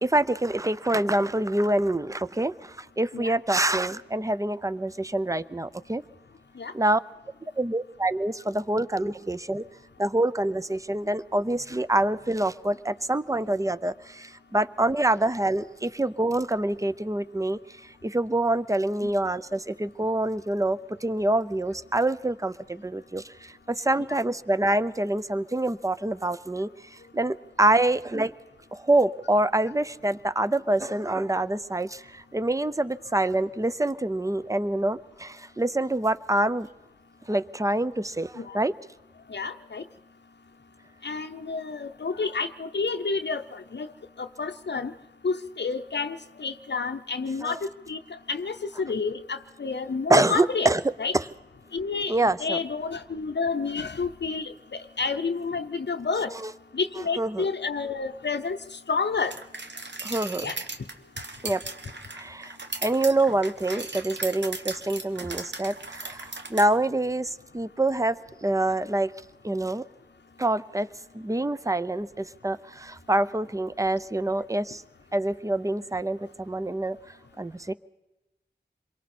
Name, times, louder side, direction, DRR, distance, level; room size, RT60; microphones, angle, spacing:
voice 1, 0.0-6.0 6.7-7.0 7.6-9.6 10.0-17.6 18.0-26.7 27.1-28.3 28.7-36.7 37.3-38.7 47.4-47.6 50.1-50.8 51.1-51.2 52.1-52.6 56.4-56.5 57.2-57.5 60.0-60.5 61.4-61.6 62.1-62.6 62.8-69.1 69.4-69.8 70.4-70.9 71.1-74.8 75.1-77.0 77.4-77.7, right 1 dB, 20° right, 15 dB, 0.6 m, -26 dB
voice 2, 39.3-39.8 41.0-43.9 44.2-44.9 45.2-47.6 47.9-48.0 48.3-50.7 51.0-51.1 51.7-56.3 56.7-58.6 58.9-59.3 60.4-60.6, left 4 dB, 80° left, 7 dB, 0.6 m, -29 dB
sound 1, 59.3-66.7, right 3 dB, 90° right, 1.1 m, -37 dB
27.0 x 23.0 x 4.3 m, 1.0 s
wide cardioid pair, 50°, 18 cm